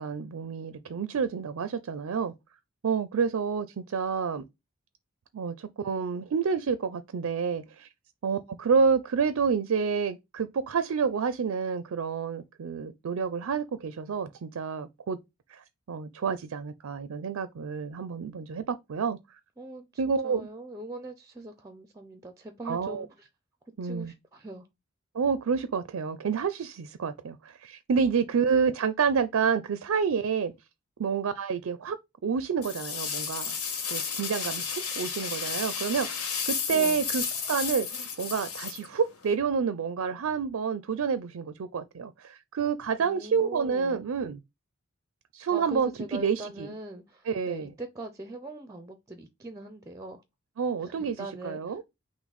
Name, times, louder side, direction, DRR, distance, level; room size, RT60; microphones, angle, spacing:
voice 1, 0.0-2.3 2.8-4.4 5.3-7.9 8.2-15.2 15.5-19.2 20.0-20.5 22.7-23.1 23.8-24.1 25.1-30.5 31.0-32.0 32.2-33.6 33.9-36.1 36.5-44.4 45.3-46.7 47.3-47.7 50.6-51.8, right 6 dB, 75° right, 0.4 m, -29 dB
voice 2, 19.6-23.3 23.8-24.7 36.7-37.0 43.0-44.1 45.5-50.2 50.8-51.8, right 2 dB, 15° right, 0.5 m, -42 dB
sound 1, 32.6-39.3, left 6 dB, 85° left, 1.2 m, -33 dB
5.8 x 2.1 x 4.0 m
head